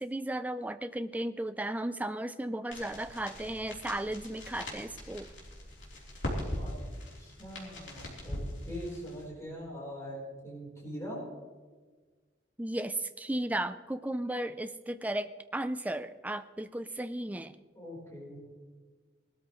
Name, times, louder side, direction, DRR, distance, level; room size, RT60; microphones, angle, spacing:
voice 1, 0.0-5.3 12.6-17.6, right 1 dB, 10° right, 10 dB, 0.4 m, -35 dB
sound 1, 2.7-9.2, left 1 dB, 65° left, 3.7 m, -40 dB
voice 2, 7.2-11.2 17.7-18.4, equal, 15° left, -5 dB, 4.1 m, -42 dB
20.0 x 13.0 x 3.1 m, 1.4 s
head